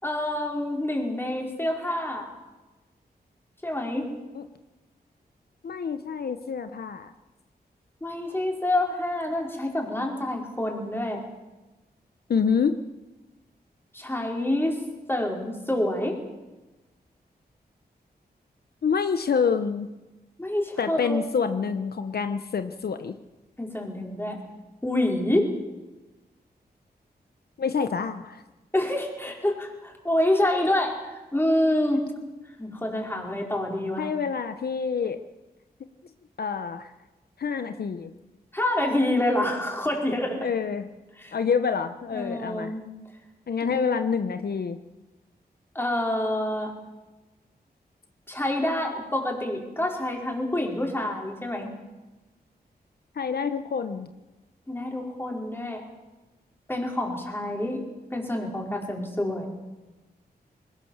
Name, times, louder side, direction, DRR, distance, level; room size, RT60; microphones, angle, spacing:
voice 1, 0.0-2.3 3.6-4.1 8.0-11.2 13.9-14.8 15.1-16.2 20.4-21.4 23.6-24.4 24.8-25.6 28.7-32.1 32.6-34.1 38.5-40.5 41.2-41.4 42.1-42.8 43.7-43.8 45.7-46.7 48.3-51.7 54.7-55.8 56.7-57.8 58.1-59.5, left 1 dB, 15° left, 0 dB, 5.0 m, -27 dB
voice 2, 5.6-7.1 12.3-12.8 18.8-19.9 20.8-23.1 27.6-28.4 34.0-35.2 36.4-36.9 37.4-38.1 40.4-40.9 41.3-42.7 43.5-44.8 53.1-54.1, left 6 dB, 70° left, 9 dB, 0.9 m, -27 dB
21.0 x 19.0 x 7.3 m, 1.1 s
wide cardioid pair, 90°, 17 cm